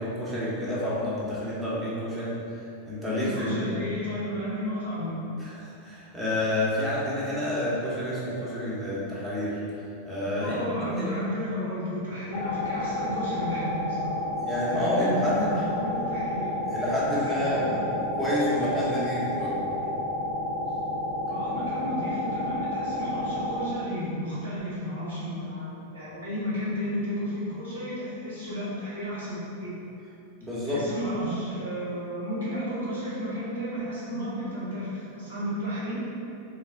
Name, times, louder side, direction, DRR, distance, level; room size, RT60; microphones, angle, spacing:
voice 1, 0.0-2.3 2.9-3.8 5.4-9.6 10.0-10.6 10.9-11.1 14.4-15.6 16.7-19.5 30.4-30.8, left 1 dB, 15° right, -8 dB, 1.1 m, -29 dB
voice 2, 3.1-5.3 10.4-14.2 14.7-16.5 17.2-17.8 21.3-29.7 30.6-35.9, equal, 65° right, -8 dB, 1.4 m, -32 dB
sound 1, 12.3-23.7, left 1 dB, 40° left, 0.4 m, -30 dB
3.9 x 2.4 x 3.6 m, 2.7 s
figure-of-eight pair, 90°, 0 cm